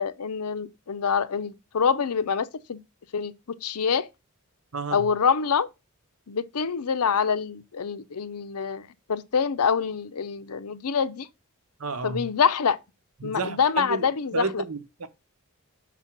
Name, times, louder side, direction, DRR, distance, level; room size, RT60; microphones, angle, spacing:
voice 1, 0.0-2.8 3.1-3.3 3.6-4.1 4.9-5.7 6.3-11.3 12.0-12.8 13.2-14.6, left 6 dB, 85° left, 0.6 m, -26 dB
voice 2, 11.8-12.2 13.2-15.1, right 3 dB, 70° right, 0.9 m, -31 dB
6.2 x 4.2 x 5.8 m
head